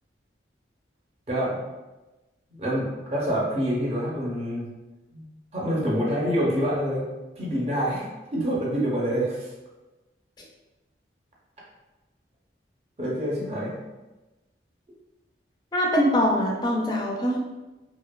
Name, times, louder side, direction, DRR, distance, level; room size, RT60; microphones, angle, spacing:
voice 1, 1.3-1.6 2.6-4.7 5.1-5.3 5.5-7.1 7.4-9.5 13.0-13.8, equal, 35° right, -5 dB, 0.5 m, -26 dB
voice 2, 15.7-17.4, equal, 20° left, -2 dB, 0.4 m, -23 dB
2.7 x 2.1 x 2.2 m, 1.1 s
head